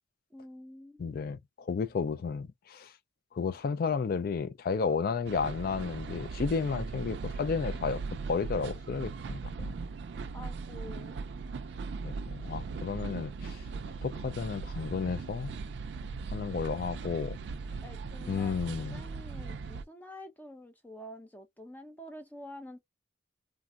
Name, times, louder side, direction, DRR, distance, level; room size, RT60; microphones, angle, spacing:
voice 1, 0.3-1.2 10.3-11.2 17.8-22.8, left 1 dB, 10° left, 0.6 m, -48 dB
voice 2, 1.0-2.9 3.3-8.0 8.3-9.7 12.0-13.6 14.0-15.5 16.3-17.4 18.3-19.0, left 5 dB, 55° left, 0.3 m, -32 dB
sound 1, 5.3-19.9, right 4 dB, 70° right, 0.3 m, -39 dB
3.4 x 2.0 x 2.3 m
head